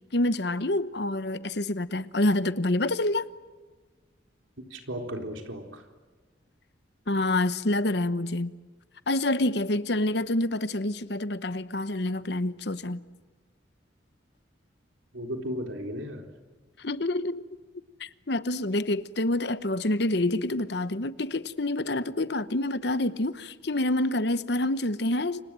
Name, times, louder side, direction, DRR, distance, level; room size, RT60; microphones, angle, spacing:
voice 1, 0.1-3.2 7.1-8.6 9.1-13.0 16.8-17.4 18.0-25.4, left 1 dB, 55° left, 1.0 m, -27 dB
voice 2, 4.7-5.8 15.1-16.3, equal, 80° right, 3.9 m, -35 dB
29.0 x 26.0 x 7.6 m
head